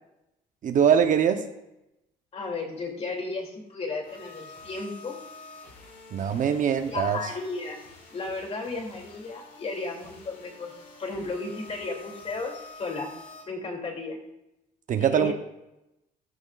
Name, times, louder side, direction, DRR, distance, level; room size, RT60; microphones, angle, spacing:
voice 1, 0.6-1.4 6.1-7.2 14.9-15.3, right 8 dB, 50° right, 7 dB, 0.9 m, -22 dB
voice 2, 2.3-5.2 6.9-7.8 8.1-13.1 13.5-14.2 15.0-15.3, left 3 dB, 35° left, 1 dB, 2.8 m, -34 dB
sound 1, 4.0-13.4, left 3 dB, 80° left, 4.6 m, -48 dB
14.5 x 13.0 x 2.5 m, 0.89 s
cardioid pair, 110°, 17 cm